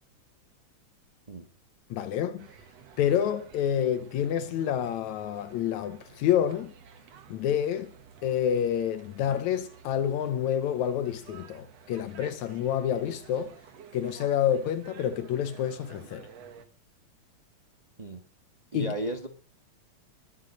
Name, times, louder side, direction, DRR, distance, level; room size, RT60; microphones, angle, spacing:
voice 1, 1.9-2.5 3.0-6.7 7.3-7.9 8.2-13.5 13.9-16.3 18.7-18.9, left 9 dB, 80° left, 2.1 m, -28 dB
sound 1, 2.4-16.7, right 7 dB, 65° right, 2.4 m, -52 dB
voice 2, 18.7-19.3, right 1 dB, 45° right, 0.5 m, -34 dB
21.0 x 7.6 x 6.4 m
omnidirectional pair, 3.4 m